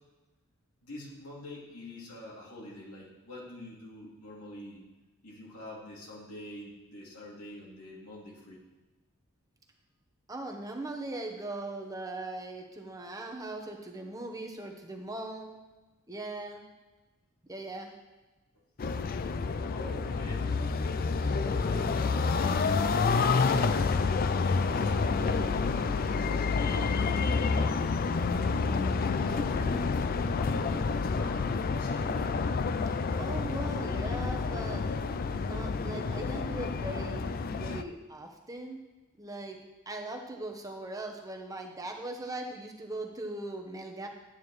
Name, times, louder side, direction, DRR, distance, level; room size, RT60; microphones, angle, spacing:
voice 1, 0.8-4.8 5.2-8.6 19.7-20.5 21.4-23.6 24.4-27.8 28.4-32.2, left 1 dB, 85° left, -4 dB, 2.8 m, -45 dB
voice 2, 10.3-15.5 16.1-16.6 17.5-17.9 32.9-34.9 35.3-37.3 37.5-38.8 39.2-39.6 39.9-44.1, right 2 dB, 15° right, 2 dB, 0.9 m, -39 dB
sound 1, 18.8-37.8, left 4 dB, 40° left, 0.4 m, -29 dB
12.0 x 9.0 x 3.2 m, 1.2 s
head